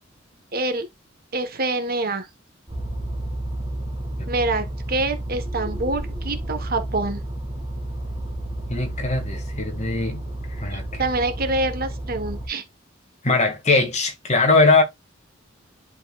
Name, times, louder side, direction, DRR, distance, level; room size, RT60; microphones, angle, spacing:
voice 1, 0.5-0.9 1.3-2.3 4.3-7.2 10.7-12.6, right 2 dB, 45° right, 1.4 m, -26 dB
sound 1, 2.7-12.5, right 1 dB, 25° right, 2.7 m, -31 dB
voice 2, 8.7-10.2 10.6-11.1 13.2-14.8, left 3 dB, 35° left, 2.2 m, -21 dB
11.0 x 4.7 x 2.4 m
head